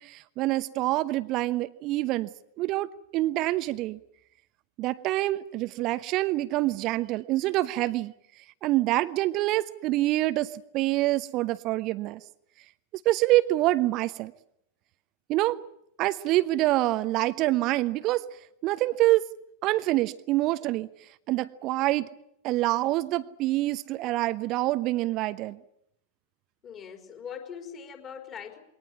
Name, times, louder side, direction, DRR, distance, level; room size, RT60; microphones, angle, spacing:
voice 1, 0.0-2.3 2.6-4.0 4.8-8.1 8.6-12.2 13.0-14.3 15.3-15.6 16.0-18.3 18.6-19.3 19.6-20.9 21.3-22.1 22.4-25.6, right 17 dB, 40° right, 14 dB, 0.9 m, -26 dB
voice 2, 26.6-28.6, left 7 dB, 30° left, 4 dB, 4.5 m, -41 dB
22.5 x 18.5 x 9.9 m, 0.76 s
figure-of-eight pair, 90°, 0 cm